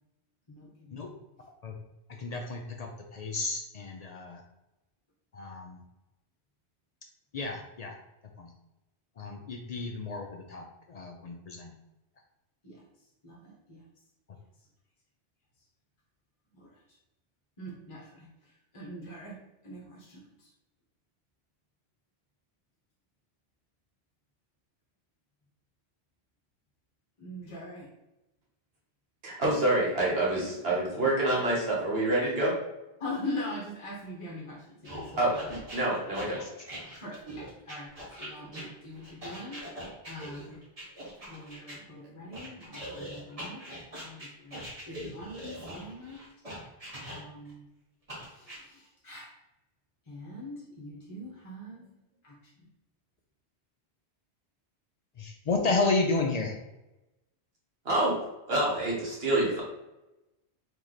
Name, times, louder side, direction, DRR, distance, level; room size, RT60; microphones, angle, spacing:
voice 1, 0.5-1.1 12.6-12.8 13.2-13.8 16.5-16.7 17.6-18.3 18.7-20.5 27.2-27.9 30.4-30.5 33.0-35.6 35.9-36.0 37.0-37.9 38.2-39.6 40.0-40.6 41.3-43.6 44.0-44.6 44.8-46.2 47.0-47.6 48.3-49.3 50.1-51.8 52.2-52.7, left 1 dB, 35° left, -4 dB, 0.8 m, -42 dB
voice 2, 2.2-4.4 5.3-5.8 7.3-7.9 8.4-8.5 9.2-10.6 10.9-11.7 55.2-56.5, left 3 dB, 55° left, 2 dB, 0.4 m, -31 dB
voice 3, 29.2-32.5 35.2-36.4 57.8-58.2 58.5-59.6, right 1 dB, 65° right, -5 dB, 1.2 m, -27 dB
sound 1, 34.8-41.8 42.3-47.5 48.1-48.6, equal, 35° right, 1.2 m, -42 dB
3.1 x 2.8 x 3.9 m, 0.94 s
omnidirectional pair, 1.1 m